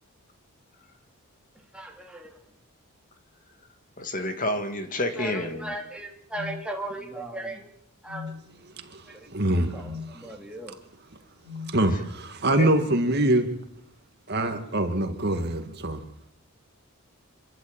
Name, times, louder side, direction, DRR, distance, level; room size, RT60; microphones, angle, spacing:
voice 1, 1.7-2.4 5.2-7.7 8.0-8.4 9.0-9.3 9.6-10.8, right 1 dB, 5° right, 2.7 m, -37 dB
voice 2, 4.0-5.7 12.6-12.7, left 1 dB, 35° left, 2.2 m, -29 dB
sound 1, 6.3-6.6 8.0-8.4 9.8-10.1 11.4-11.7, left 5 dB, 85° left, 4.2 m, -38 dB
voice 3, 8.8-10.4 10.7-10.8 11.7-13.5 14.3-16.0, right 1 dB, 45° right, 2.2 m, -25 dB
26.0 x 13.5 x 8.9 m
head